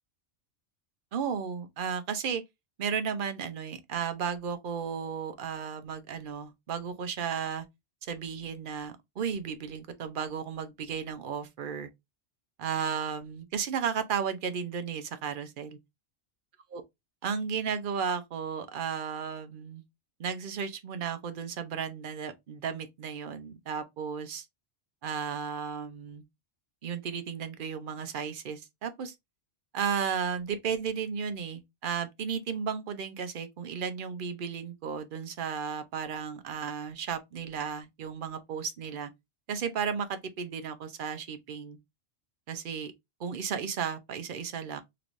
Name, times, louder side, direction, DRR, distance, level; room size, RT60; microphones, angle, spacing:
voice 1, 1.1-2.4 2.8-7.7 8.1-11.9 12.6-15.7 16.7-16.8 17.2-19.8 20.2-24.5 25.0-26.2 26.8-29.1 29.7-39.1 39.5-41.8 42.5-42.9 43.2-44.8, right 7 dB, 55° right, 0.7 m, -34 dB
3.2 x 3.0 x 2.5 m
omnidirectional pair, 1.2 m